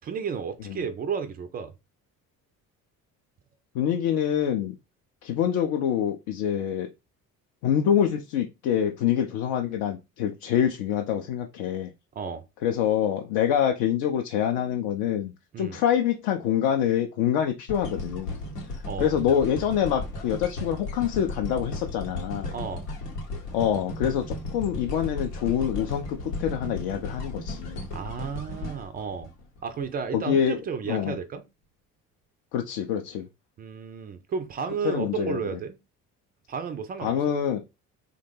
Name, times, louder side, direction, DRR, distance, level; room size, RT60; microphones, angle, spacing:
voice 1, 0.0-1.7 12.1-12.4 15.5-15.8 18.9-19.1 22.5-22.9 27.9-29.3 29.6-31.4 33.6-35.8 36.5-37.3, right 6 dB, 20° right, 0.3 m, -33 dB
voice 2, 3.7-4.7 5.2-6.9 7.6-11.9 12.6-15.3 15.6-18.3 19.0-22.5 23.5-24.2 24.5-27.9 30.1-30.6 30.9-31.2 32.5-33.2 34.8-35.4 37.0-37.6, left 9 dB, 50° left, 0.5 m, -25 dB
sound 1, 17.7-29.9 30.4-30.5, left 2 dB, 80° left, 0.8 m, -35 dB
3.3 x 2.1 x 3.1 m
figure-of-eight pair, 50°, 47 cm